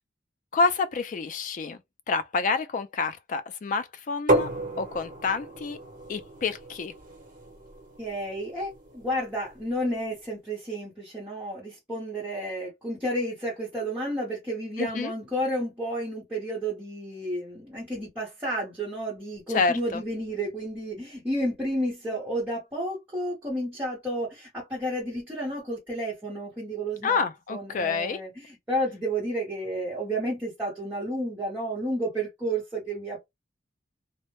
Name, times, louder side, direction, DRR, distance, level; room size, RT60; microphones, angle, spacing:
voice 1, 0.5-1.8 2.1-4.5 4.8-5.8 6.1-6.9 14.8-15.1 19.5-20.0 27.0-28.2, left 4 dB, 45° left, 0.3 m, -28 dB
sound 1, 4.3-9.9, right 1 dB, 45° right, 0.9 m, -32 dB
voice 2, 8.0-27.2 27.5-33.3, right 1 dB, 10° right, 0.9 m, -31 dB
2.1 x 2.1 x 2.9 m
head